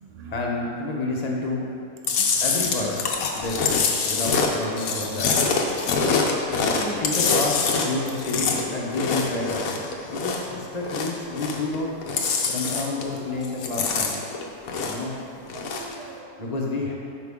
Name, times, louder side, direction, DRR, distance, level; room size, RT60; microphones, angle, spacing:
voice 1, 0.3-1.7 2.4-3.1 3.3-5.5 6.8-9.8 10.1-11.9 12.5-14.3 14.8-15.2 16.4-16.9, left 2 dB, 30° left, -2 dB, 0.9 m, -29 dB
Chewing mastication, 2.1-10.5 10.8-11.8 12.0-13.2 13.4-15.1 15.5-15.9, left 5 dB, 70° left, 1.2 m, -25 dB
voice 2, 2.1-2.4 5.7-6.8 13.1-13.2 15.5-16.3, right 3 dB, 45° right, 2 dB, 0.5 m, -41 dB
10.5 x 5.2 x 3.7 m, 2.5 s
omnidirectional pair, 1.6 m